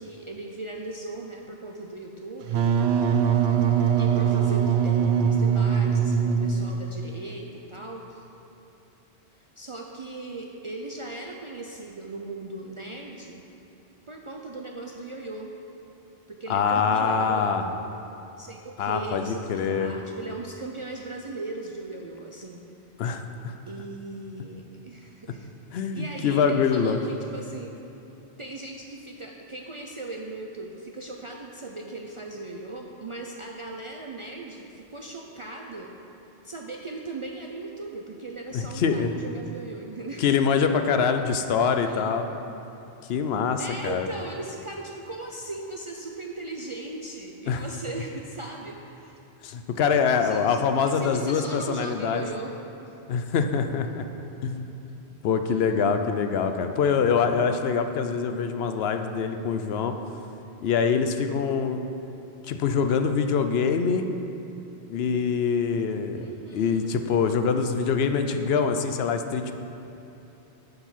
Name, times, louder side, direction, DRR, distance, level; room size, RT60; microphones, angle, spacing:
voice 1, 0.0-2.7 4.0-8.2 9.6-13.4 14.1-15.5 16.3-17.8 18.4-22.6 23.7-27.7 28.4-35.9 36.4-40.3 41.8-42.1 43.6-49.2 50.0-52.9 55.5-55.7 66.1-66.9, right 2 dB, 45° right, 0 dB, 0.4 m, -38 dB
Wind instrument woodwind instrument, 2.4-7.0, right 7 dB, 75° right, 0.9 m, -22 dB
voice 2, 16.5-17.6 18.8-19.9 23.0-23.5 25.7-27.0 38.5-39.1 40.2-42.3 43.1-44.1 47.5-47.6 49.4-52.2 53.1-54.0 54.4-54.6 55.2-60.0 60.6-61.8 62.5-64.1 64.9-66.3 66.5-69.5, left 6 dB, 70° left, 7 dB, 0.8 m, -24 dB
7.0 x 6.6 x 5.7 m, 3.0 s
omnidirectional pair, 1.1 m